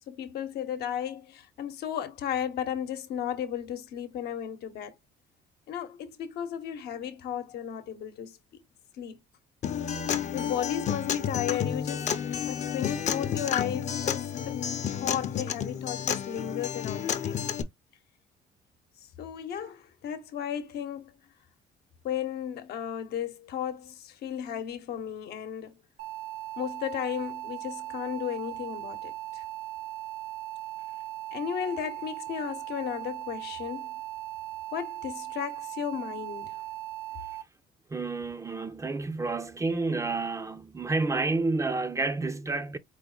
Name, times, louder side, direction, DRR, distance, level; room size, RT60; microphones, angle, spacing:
voice 1, 0.1-4.9 5.7-8.4 9.0-9.2 10.3-12.1 12.4-14.6 14.9-17.5 19.2-21.1 22.0-25.8 26.6-29.4 31.3-33.9 34.7-36.6, left 9 dB, 70° left, 0.9 m, -34 dB
Acoustic guitar, 9.6-17.6, left 8 dB, 45° left, 0.7 m, -31 dB
sound 1, 26.0-37.4, right 16 dB, 70° right, 0.8 m, -38 dB
voice 2, 37.9-42.8, right 3 dB, 20° right, 0.5 m, -30 dB
4.7 x 2.1 x 3.9 m
cardioid pair, 110°, 17 cm